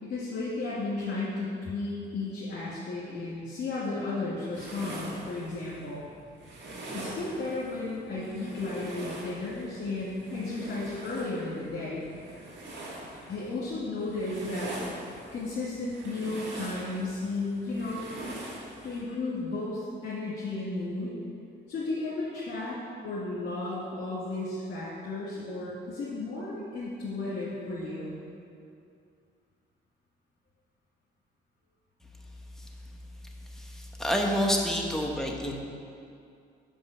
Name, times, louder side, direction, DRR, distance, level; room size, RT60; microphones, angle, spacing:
voice 1, 0.0-6.0 6.9-12.0 13.3-14.8 15.3-18.1 18.8-21.2 21.7-28.2, left 2 dB, 55° left, -8 dB, 1.8 m, -34 dB
sound 1, 4.5-19.0, right 1 dB, 65° right, 1.7 m, -43 dB
voice 2, 33.6-35.5, equal, ahead, 0 dB, 1.0 m, -28 dB
5.4 x 5.3 x 6.5 m, 2.5 s
cardioid pair, 90°, 20 cm